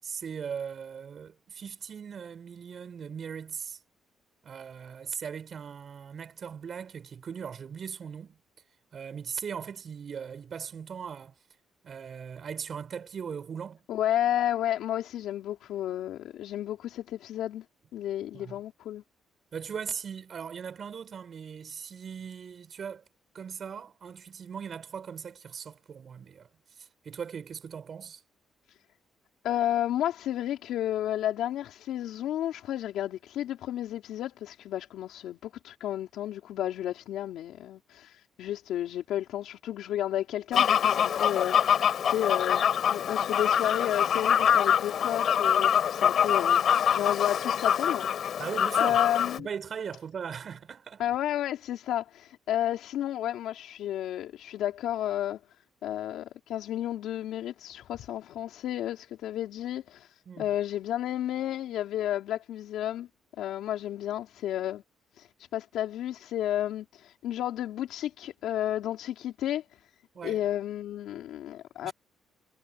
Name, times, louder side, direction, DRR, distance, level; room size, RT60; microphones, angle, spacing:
voice 1, 0.0-3.8 4.4-8.4 8.9-11.3 11.8-13.8 18.3-18.6 19.5-23.0 23.3-26.5 26.8-28.2 48.4-49.0 49.4-51.0 60.3-60.5 70.1-70.4 71.8-71.9, right 7 dB, 50° right, 6.0 m, -39 dB
voice 2, 13.9-17.6 17.9-19.0 28.7-28.8 29.4-48.5 48.8-49.5 51.0-55.4 55.8-63.1 63.4-64.8 65.1-69.8 70.2-71.9, left 12 dB, 80° left, 3.8 m, -32 dB
Fowl, 40.5-49.4, left 8 dB, 60° left, 5.4 m, -25 dB
cardioid pair, 90°, 0 cm